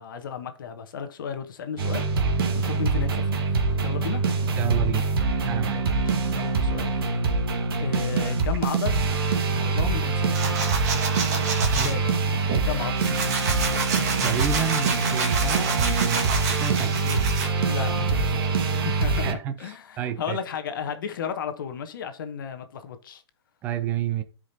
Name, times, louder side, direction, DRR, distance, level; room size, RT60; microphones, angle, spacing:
voice 1, 0.0-2.1 2.5-4.2 5.7-6.9 7.8-9.0 9.6-10.4 11.7-12.1 12.6-13.1 17.0-23.2, left 7 dB, 45° left, 1.1 m, -34 dB
sound 1, 1.8-19.3, right 3 dB, 55° right, 1.6 m, -24 dB
voice 2, 4.6-5.1 5.5-5.8 11.7-11.9 14.2-16.3 16.6-17.0 19.2-19.5 20.0-20.4 23.6-24.2, right 9 dB, 10° right, 0.5 m, -29 dB
sound 2, 10.3-11.9 12.5-17.5, right 5 dB, 35° right, 1.8 m, -29 dB
13.0 x 5.1 x 2.8 m
hypercardioid pair, 170°, 15 cm